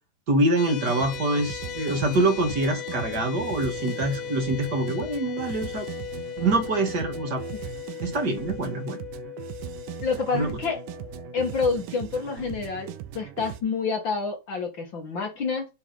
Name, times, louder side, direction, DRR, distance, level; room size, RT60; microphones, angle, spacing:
voice 1, 0.3-5.9 6.1-7.4 8.0-9.0 10.3-10.5, right 2 dB, 40° right, 1.7 m, -25 dB
sound 1, 0.6-11.7, left 11 dB, 75° left, 2.4 m, -37 dB
sound 2, 0.8-13.6, right 13 dB, 90° right, 2.4 m, -39 dB
voice 2, 10.0-10.8 11.3-15.7, left 4 dB, 50° left, 1.5 m, -28 dB
8.0 x 4.2 x 5.2 m
omnidirectional pair, 3.8 m